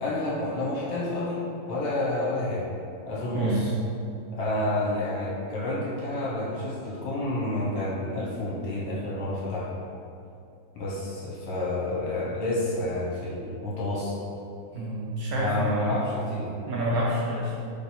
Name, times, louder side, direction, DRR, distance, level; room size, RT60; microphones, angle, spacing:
voice 1, 0.0-1.4 1.7-2.7 3.1-3.7 4.3-9.7 10.7-14.2 15.4-16.5, left 2 dB, 70° left, -6 dB, 1.5 m, -29 dB
voice 2, 3.3-3.7 14.7-15.9 16.7-17.6, right 1 dB, 70° right, -5 dB, 0.9 m, -28 dB
3.2 x 3.1 x 4.2 m, 2.6 s
omnidirectional pair, 1.9 m